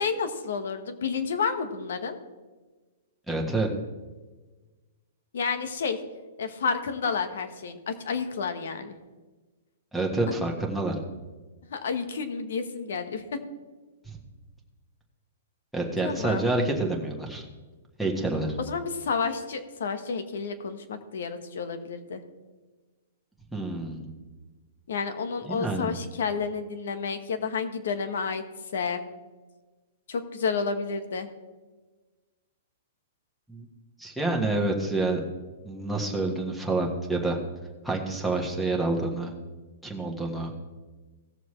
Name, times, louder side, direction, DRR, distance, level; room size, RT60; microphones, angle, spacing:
voice 1, 0.0-2.2 5.3-6.0 6.4-9.0 11.7-13.2 16.0-16.5 18.6-22.2 24.9-28.4 28.7-29.0 30.1-31.3, left 5 dB, 75° left, 8 dB, 1.3 m, -30 dB
voice 2, 3.3-3.7 9.9-11.0 15.7-17.4 18.0-18.5 23.5-24.1 25.5-25.9 33.5-33.6 34.0-35.2 35.6-37.4 37.8-39.3 39.8-40.5, right 2 dB, ahead, -2 dB, 1.5 m, -28 dB
17.5 x 6.8 x 3.2 m, 1.3 s
hypercardioid pair, 155°, 0 cm